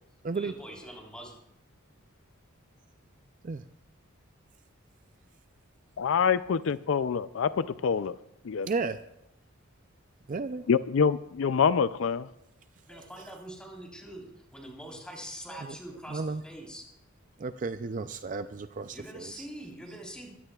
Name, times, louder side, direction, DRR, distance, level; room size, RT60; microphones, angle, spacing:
voice 1, 0.3-1.3 12.8-14.2 14.5-16.9 18.9-20.3, right 1 dB, 5° left, -1 dB, 3.7 m, -44 dB
voice 2, 6.0-8.2 8.4-8.7 10.7-12.3, left 6 dB, 70° left, 14 dB, 0.4 m, -26 dB
voice 3, 8.7-9.0 10.3-10.6 12.9-13.0 16.1-16.4 17.4-19.4, right 4 dB, 40° right, 10 dB, 0.4 m, -33 dB
22.5 x 15.5 x 2.4 m, 0.81 s
head